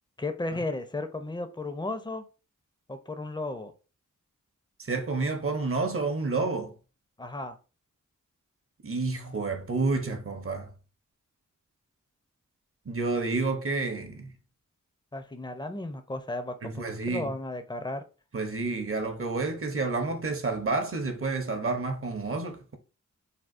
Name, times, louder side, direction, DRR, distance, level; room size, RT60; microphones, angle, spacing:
voice 1, 0.2-2.2 2.9-3.7 7.2-7.6 15.1-18.0, left 2 dB, 15° left, 0.5 m, -34 dB
voice 2, 4.8-6.7 8.8-10.7 12.9-14.3 16.6-17.3 18.3-22.8, right 3 dB, 45° right, 0.7 m, -29 dB
3.5 x 2.3 x 2.5 m
cardioid pair, 45°, 32 cm